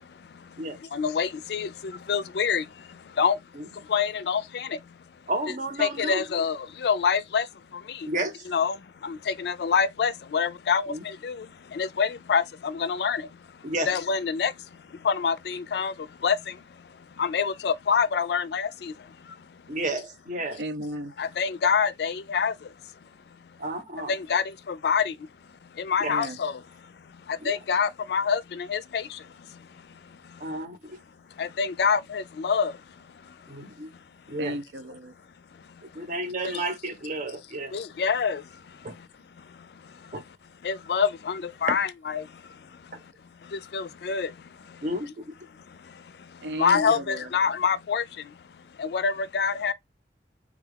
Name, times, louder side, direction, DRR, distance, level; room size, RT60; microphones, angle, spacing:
voice 1, 0.9-1.7 2.1-2.6 3.2-3.4 3.9-4.4 5.8-6.6 6.8-7.4 8.5-8.8 9.4-10.9 11.2-11.3 11.8-12.4 12.8-13.2 13.9-14.5 15.1-15.9 16.2-16.4 17.2-18.7 21.2-22.5 24.1-24.4 24.8-25.0 25.9-26.5 27.5-28.4 28.7-29.0 31.4-32.7 37.7-38.4 40.7-42.2 43.7-44.3 46.6-48.0 48.8-49.7, left 6 dB, 65° left, 0.4 m, -25 dB
voice 2, 5.3-6.2 8.1-8.4 10.9-11.0 13.6-13.9 19.7-20.6 23.6-24.1 26.0-26.2 27.4-27.6 30.4-31.0 33.5-33.9 34.3-34.6 35.9-37.8 38.8-38.9 40.1-40.2 41.7-41.8 44.8-45.2, right 1 dB, 45° right, 0.8 m, -31 dB
voice 3, 20.6-21.1 26.1-26.4 34.4-35.1 46.4-47.3, right 1 dB, 75° right, 0.6 m, -34 dB
3.6 x 2.3 x 3.3 m
head